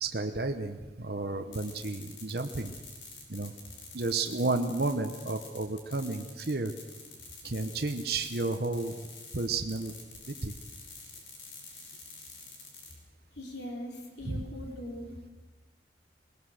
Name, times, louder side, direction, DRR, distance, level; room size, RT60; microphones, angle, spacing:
voice 1, 0.0-2.7 3.3-3.5 3.9-6.7 7.4-8.9 9.3-9.9 10.3-10.5 14.2-14.4, right 3 dB, 55° right, 5 dB, 1.0 m, -32 dB
sound 1, 1.5-12.9, left 4 dB, 90° left, 5.8 m, -48 dB
voice 2, 13.3-15.3, left 1 dB, 70° left, 1 dB, 3.8 m, -41 dB
21.0 x 20.0 x 6.5 m, 1.2 s
head